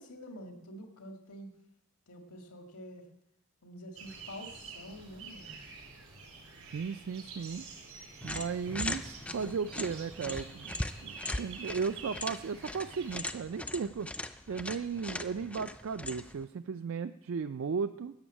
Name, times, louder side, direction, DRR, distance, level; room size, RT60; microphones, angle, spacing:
voice 1, 0.0-1.5 2.1-3.1 3.6-5.6, equal, 90° left, 3 dB, 1.8 m, -47 dB
sound 1, 3.9-13.2, right 4 dB, 85° right, 4.2 m, -48 dB
voice 2, 6.7-7.6 8.2-14.1 14.5-18.1, right 5 dB, 65° right, 11 dB, 0.4 m, -35 dB
sound 2, 8.2-16.4, left 1 dB, 5° left, 0.3 m, -40 dB
12.5 x 7.1 x 8.7 m, 0.88 s
head